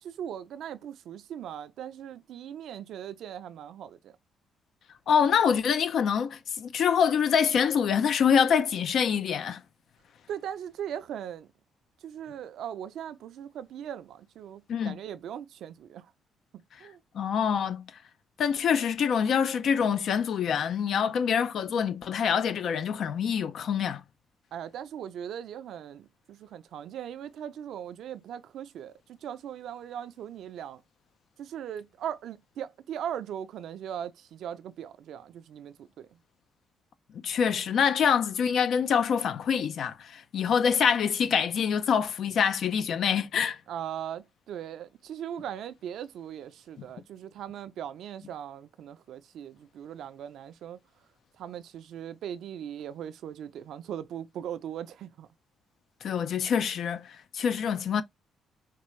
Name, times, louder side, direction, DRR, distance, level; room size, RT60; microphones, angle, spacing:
voice 1, 0.0-4.2 10.3-11.5 12.0-16.1 16.5-17.0 24.5-30.8 31.4-36.2 43.7-50.8 51.4-55.3, right 9 dB, 75° right, 0.5 m, -39 dB
voice 2, 5.1-9.6 14.7-15.0 17.1-17.8 18.4-24.0 37.2-43.6 46.8-46.9 56.0-58.0, left 7 dB, 65° left, 0.5 m, -25 dB
4.4 x 2.4 x 3.1 m
cardioid pair, 90°, 0 cm